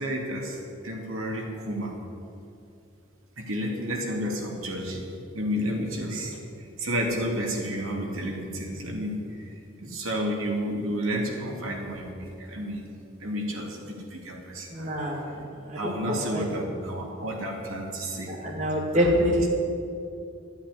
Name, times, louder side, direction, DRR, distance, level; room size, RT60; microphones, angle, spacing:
voice 1, 0.0-2.0 3.4-5.1 5.3-9.5 9.8-12.9 13.2-14.9 15.7-18.3 19.0-19.3, equal, 75° right, 0 dB, 2.6 m, -31 dB
voice 2, 14.7-16.5 18.3-19.5, equal, 35° right, -1 dB, 2.2 m, -26 dB
13.5 x 9.0 x 9.8 m, 2.6 s
head